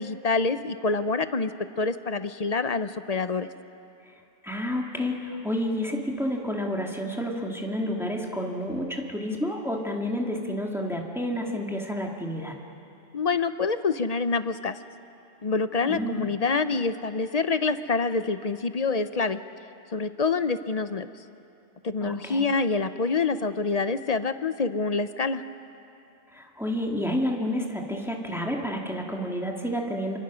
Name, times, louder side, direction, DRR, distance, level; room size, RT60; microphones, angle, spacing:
voice 1, 0.0-1.5 1.8-3.5 13.1-14.8 15.4-19.4 19.9-21.1 21.8-25.4, left 4 dB, 45° left, 11 dB, 0.7 m, -26 dB
voice 2, 4.4-12.5 15.8-16.2 22.0-22.5 26.3-30.2, equal, ahead, 0 dB, 2.1 m, -30 dB
27.0 x 24.5 x 6.3 m, 2.7 s
omnidirectional pair, 1.1 m